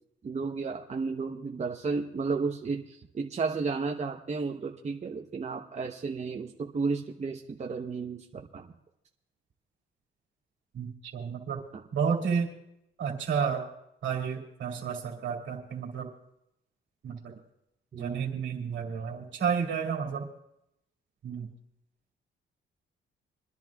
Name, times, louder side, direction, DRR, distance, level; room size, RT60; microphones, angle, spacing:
voice 1, 0.2-8.3 8.5-8.7 17.9-18.3, right 4 dB, 35° right, 2 dB, 1.0 m, -33 dB
voice 2, 10.7-11.6 11.9-12.5 13.0-13.6 14.0-16.1 17.0-17.4 18.0-20.3 21.2-21.5, right 6 dB, 70° right, 0 dB, 2.4 m, -31 dB
28.0 x 11.0 x 2.4 m, 0.82 s
cardioid pair, 90°, 20 cm